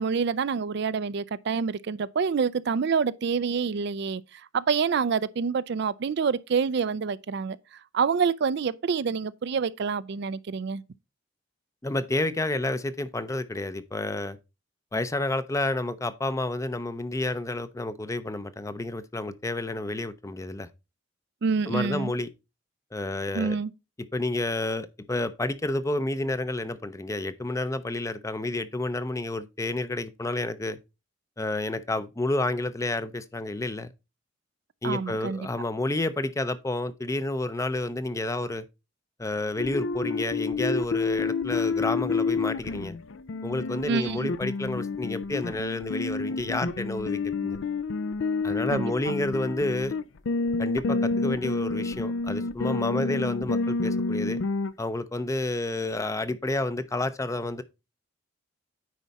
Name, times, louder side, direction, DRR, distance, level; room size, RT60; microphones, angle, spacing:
voice 1, 0.0-10.8 21.4-22.1 23.3-23.7 34.8-35.4 43.9-44.3 48.7-48.9, right 5 dB, 60° right, 0.4 m, -27 dB
voice 2, 11.8-14.4 14.9-20.7 21.7-22.3 22.9-23.6 24.1-30.8 31.4-33.9 34.8-38.7 39.2-43.0 43.4-47.6 48.4-49.9 50.6-54.4 54.8-57.6, left 2 dB, 15° left, 0.5 m, -30 dB
sound 1, 39.6-54.7, left 4 dB, 70° left, 0.5 m, -29 dB
9.3 x 4.7 x 4.1 m
head